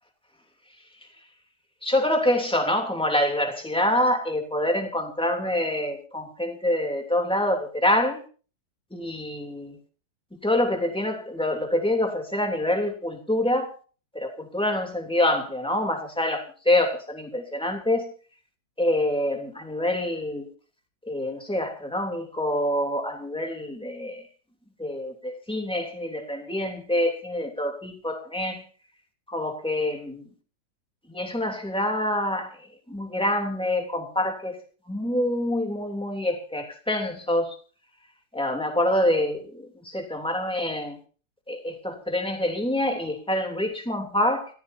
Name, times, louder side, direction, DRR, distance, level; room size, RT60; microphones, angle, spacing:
voice 1, 1.8-8.2 8.9-9.7 10.4-13.7 14.1-18.1 18.8-20.5 21.1-24.2 24.8-28.6 29.3-30.2 31.1-32.5 32.9-34.6 34.9-37.5 38.3-39.6 39.9-41.0 41.5-44.5, left 1 dB, 5° left, 3.0 m, -26 dB
30.0 x 15.5 x 2.8 m
omnidirectional pair, 1.9 m